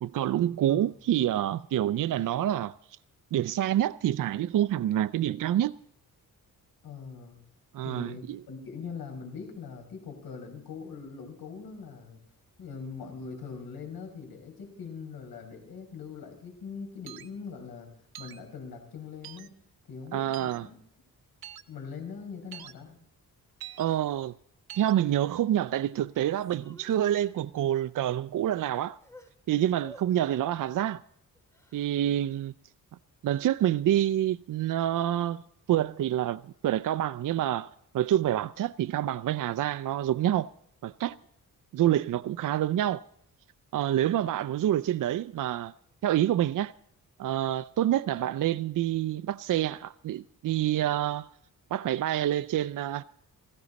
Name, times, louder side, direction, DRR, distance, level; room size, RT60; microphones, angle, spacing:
voice 1, 0.0-2.7 3.3-5.7 7.7-8.4 20.1-20.7 23.8-24.3 24.8-29.0 29.5-31.0 31.7-32.5 33.2-35.4 35.7-40.5 40.8-41.2 41.7-43.0 43.7-45.7 46.0-46.7 47.2-51.3 51.7-53.0, right 12 dB, 60° right, 0.5 m, -27 dB
voice 2, 6.8-7.4 7.8-12.2 12.6-17.9 18.2-19.5 19.9-20.8 21.7-23.0, left 5 dB, 85° left, 5.2 m, -42 dB
sound 1, 17.1-17.3 18.1-18.4 19.2-19.5 20.3-20.6 21.4-21.6 22.5-22.7 23.6-23.8 24.7-24.9, right 12 dB, 85° right, 0.9 m, -44 dB
Crying sobbing, 21.9-22.0 22.5-22.7 23.7-24.3 25.0-25.3 25.7-27.4 28.0-28.1 28.4-29.3 29.8-30.1 31.3-31.9, equal, 10° left, 2.4 m, -54 dB
18.5 x 15.5 x 4.1 m
cardioid pair, 95°, 36 cm